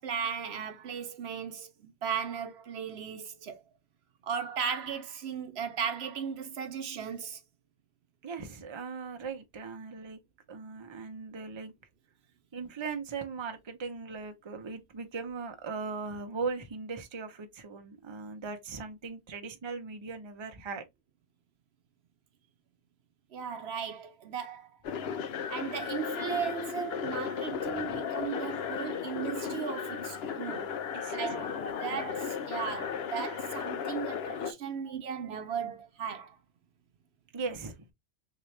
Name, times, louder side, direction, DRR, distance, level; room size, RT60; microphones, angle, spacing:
voice 1, 0.0-3.6 4.2-7.4 23.3-24.7 25.5-30.7 31.1-36.4, right 7 dB, 70° right, 1.0 m, -36 dB
voice 2, 8.2-10.2 10.5-11.7 12.5-20.8 27.6-28.0 30.9-31.7 37.3-37.9, right 4 dB, 30° right, 0.6 m, -39 dB
sound 1, 24.8-34.5, left 7 dB, 70° left, 0.9 m, -35 dB
3.7 x 2.9 x 3.2 m
omnidirectional pair, 1.1 m